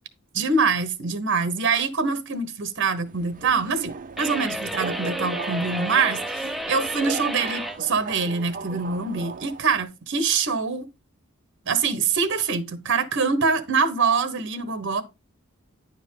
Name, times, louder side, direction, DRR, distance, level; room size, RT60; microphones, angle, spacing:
voice 1, 0.3-10.9 11.6-15.0, right 5 dB, 60° right, 1.2 m, -24 dB
Subway metro underground, 3.0-9.8, right 4 dB, 40° right, 0.7 m, -37 dB
sound 1, 4.2-7.8, right 1 dB, ahead, 0.5 m, -31 dB
10.0 x 5.2 x 3.8 m
head